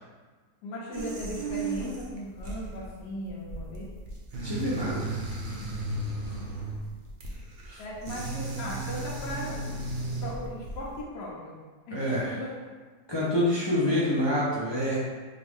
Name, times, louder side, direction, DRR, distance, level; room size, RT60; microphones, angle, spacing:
voice 1, 0.6-3.9 7.8-9.6 10.2-11.6 11.9-12.5 13.9-14.3, left 1 dB, 85° left, -5 dB, 1.4 m, -37 dB
sound 1, 0.9-11.0, right 2 dB, 60° right, 0.5 m, -35 dB
voice 2, 4.4-5.2 7.6-7.8 11.9-12.4 13.1-15.1, left 1 dB, 40° left, -8 dB, 0.3 m, -27 dB
5.2 x 2.5 x 3.5 m, 1.4 s
omnidirectional pair, 1.7 m